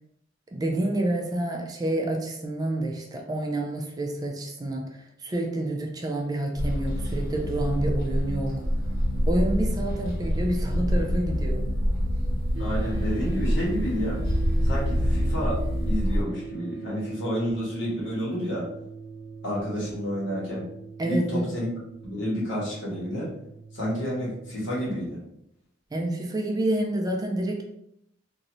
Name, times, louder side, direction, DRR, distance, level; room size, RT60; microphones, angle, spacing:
voice 1, 0.5-8.6 9.3-11.7 21.0-21.5 25.9-27.6, right 1 dB, 20° right, 1 dB, 0.3 m, -28 dB
sound 1, 6.5-16.2, equal, 85° left, 1.4 m, -26 dB
sound 2, 12.5-24.7, right 5 dB, 65° right, 0.6 m, -41 dB
voice 2, 12.6-14.2 14.6-15.6 15.9-18.7 19.4-20.6 21.0-21.7 22.0-23.3 23.7-25.2, equal, 65° left, -6 dB, 1.3 m, -30 dB
2.6 x 2.6 x 3.0 m, 0.79 s
head